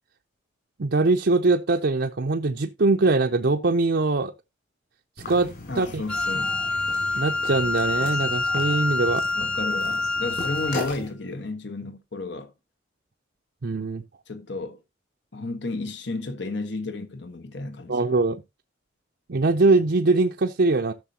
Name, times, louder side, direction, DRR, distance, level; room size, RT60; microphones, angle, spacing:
voice 1, 0.8-4.3 5.3-5.5 5.8-5.9 7.2-9.3 13.6-14.0 17.9-18.4 19.3-20.9, right 3 dB, 55° right, 0.6 m, -22 dB
sound 1, 5.2-11.1, left 1 dB, 50° left, 7.0 m, -37 dB
voice 2, 5.7-6.6 9.3-12.5 14.3-14.8 15.3-18.0, left 2 dB, 65° left, 1.4 m, -32 dB
Wind instrument woodwind instrument, 6.1-10.9, left 3 dB, 5° left, 0.5 m, -26 dB
14.0 x 6.6 x 2.9 m
head